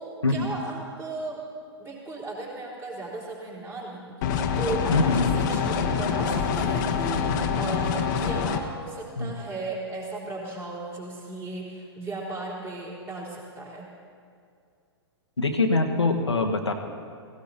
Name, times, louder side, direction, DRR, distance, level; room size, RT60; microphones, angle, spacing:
voice 1, 0.0-1.4 1.8-13.9, right 2 dB, 15° right, -4 dB, 3.6 m, -36 dB
sound 1, 4.2-8.6, left 6 dB, 45° left, 1.2 m, -25 dB
voice 2, 4.9-5.4 9.2-9.4 15.4-16.7, left 3 dB, 85° left, 2 dB, 1.3 m, -24 dB
17.0 x 16.5 x 4.3 m, 2.3 s
figure-of-eight pair, 110°, 14 cm